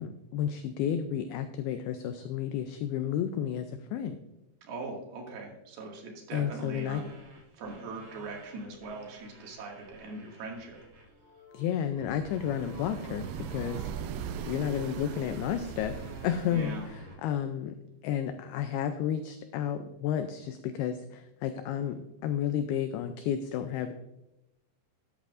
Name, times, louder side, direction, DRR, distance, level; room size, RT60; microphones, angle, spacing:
voice 1, 0.0-4.2 6.3-7.0 11.5-14.1 14.5-17.7 18.0-23.9, left 9 dB, 85° left, 9 dB, 2.3 m, -32 dB
voice 2, 4.6-7.2 7.5-10.8 16.5-16.8, right 3 dB, 65° right, -1 dB, 3.9 m, -41 dB
sound 1, 6.7-11.1 12.0-17.2, right 1 dB, 40° right, 2.0 m, -50 dB
sound 2, 11.0-16.7, left 3 dB, 10° right, 2.1 m, -58 dB
sound 3, 12.2-17.0, right 8 dB, 85° right, 2.8 m, -40 dB
12.5 x 10.5 x 2.6 m, 0.93 s
omnidirectional pair, 5.0 m